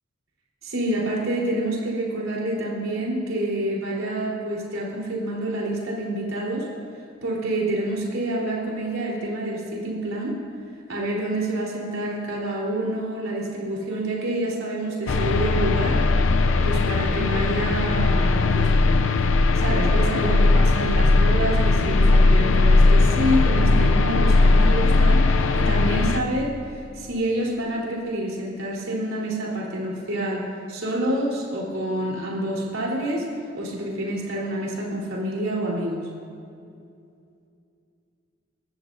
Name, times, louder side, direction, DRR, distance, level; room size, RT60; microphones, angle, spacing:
voice 1, 0.6-6.7 7.2-10.3 10.9-16.0 16.6-19.0 19.6-26.5 26.9-36.0, right 1 dB, 85° right, -4 dB, 4.0 m, -27 dB
sound 1, 15.1-26.2, left 3 dB, 75° left, 0.6 m, -18 dB
28.0 x 14.0 x 2.7 m, 2.5 s
head